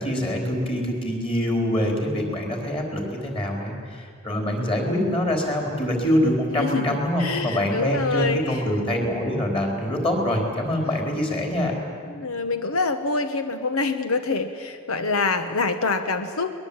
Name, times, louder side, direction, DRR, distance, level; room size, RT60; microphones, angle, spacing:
voice 1, 0.0-11.7, left 1 dB, 25° left, 1 dB, 4.3 m, -25 dB
voice 2, 6.6-8.6 12.0-16.6, left 3 dB, 85° left, 9 dB, 1.1 m, -26 dB
22.5 x 21.0 x 8.8 m, 2.1 s
head